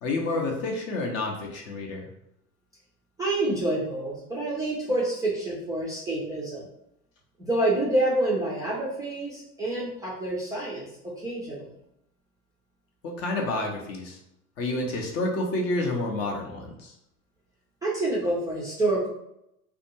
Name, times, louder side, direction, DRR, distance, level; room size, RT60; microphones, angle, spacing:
voice 1, 0.0-2.1 13.0-14.2 14.6-17.0, left 2 dB, 35° left, 1 dB, 0.6 m, -29 dB
voice 2, 3.2-6.6 7.4-11.7 17.8-19.1, right 2 dB, 10° right, -6 dB, 0.4 m, -27 dB
2.5 x 2.2 x 2.8 m, 0.79 s
figure-of-eight pair, 80°, 45 cm